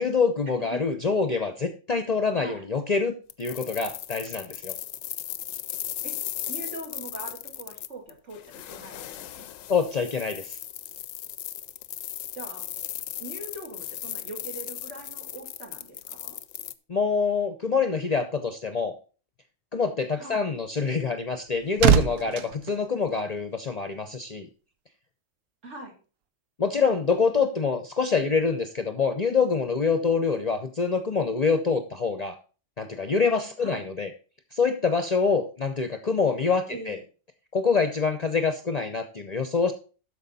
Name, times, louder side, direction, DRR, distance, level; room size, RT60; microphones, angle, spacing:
voice 1, 0.0-4.7 9.7-10.6 16.9-18.9 19.7-24.5 26.6-32.3 32.8-34.1 34.5-37.0 37.5-39.7, left 5 dB, 40° left, 7 dB, 0.7 m, -25 dB
voice 2, 2.3-2.6 6.0-6.2 6.5-9.5 12.3-12.7 13.2-16.4 20.2-20.5 25.6-26.0 33.6-33.9 36.7-37.0, right 2 dB, 65° right, 0 dB, 2.8 m, -41 dB
sound 1, 3.3-16.7, left 12 dB, 85° left, 1.0 m, -37 dB
sound 2, 21.1-23.7 24.0-24.3, right 8 dB, 80° right, 1.1 m, -25 dB
12.5 x 4.8 x 4.1 m, 0.36 s
omnidirectional pair, 1.3 m